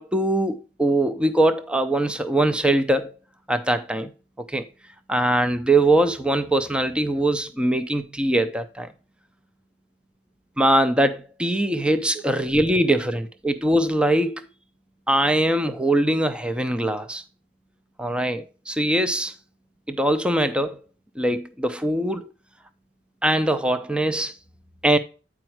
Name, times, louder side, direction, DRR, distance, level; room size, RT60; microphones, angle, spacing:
voice 1, 0.0-3.1 3.5-4.1 4.4-4.6 5.1-8.9 10.6-14.4 15.1-17.2 18.0-19.3 19.9-20.8 21.2-22.3 23.2-24.3 24.8-25.0, right 1 dB, 5° right, 0.5 m, -22 dB
8.8 x 5.0 x 4.4 m
head